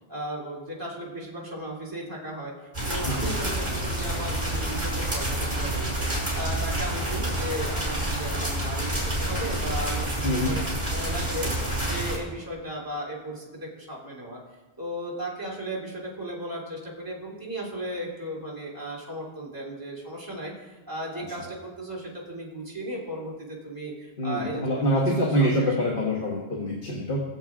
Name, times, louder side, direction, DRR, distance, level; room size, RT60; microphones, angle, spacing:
voice 1, 0.1-6.1 6.3-10.6 10.9-14.4 14.8-25.7, right 1 dB, 20° right, -5 dB, 2.7 m, -36 dB
sound 1, 2.7-12.2, right 1 dB, 45° right, 4.8 m, -28 dB
voice 2, 10.2-10.6 24.2-27.2, equal, 55° left, -2 dB, 1.7 m, -25 dB
19.5 x 7.8 x 3.7 m, 1.1 s
omnidirectional pair, 1.1 m